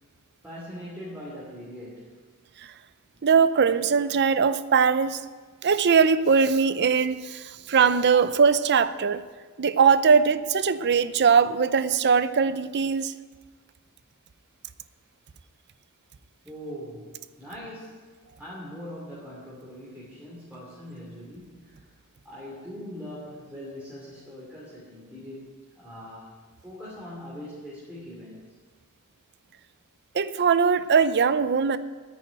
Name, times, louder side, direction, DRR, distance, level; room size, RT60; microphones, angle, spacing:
voice 1, 0.4-2.2 16.4-18.1 18.4-21.8 22.2-25.5 25.7-26.4 26.6-28.5, equal, 5° right, -7 dB, 2.7 m, -41 dB
voice 2, 3.2-5.2 5.6-7.4 7.7-9.2 9.6-13.1 30.2-31.8, right 6 dB, 50° right, 14 dB, 0.6 m, -21 dB
10.0 x 9.2 x 9.1 m, 1.5 s
head